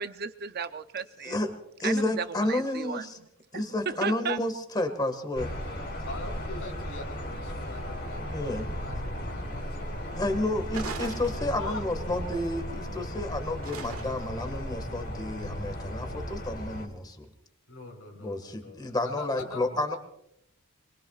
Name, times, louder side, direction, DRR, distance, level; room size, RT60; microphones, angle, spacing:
voice 1, 0.0-1.4 1.8-3.1 3.5-4.4, right 6 dB, 45° right, 11 dB, 0.6 m, -34 dB
voice 2, 1.8-3.2 3.5-5.5 8.3-8.6 10.1-17.3 18.2-20.0, left 1 dB, 20° left, 5 dB, 1.8 m, -31 dB
sound 1, 5.4-16.9, equal, 55° left, 3.9 m, -36 dB
voice 3, 6.0-10.2 11.6-11.8 17.7-20.0, left 3 dB, 90° left, 2 dB, 4.2 m, -43 dB
sound 2, 10.7-11.9 13.6-14.4, right 5 dB, 80° right, 1.6 m, -40 dB
26.0 x 22.0 x 2.5 m, 0.78 s
head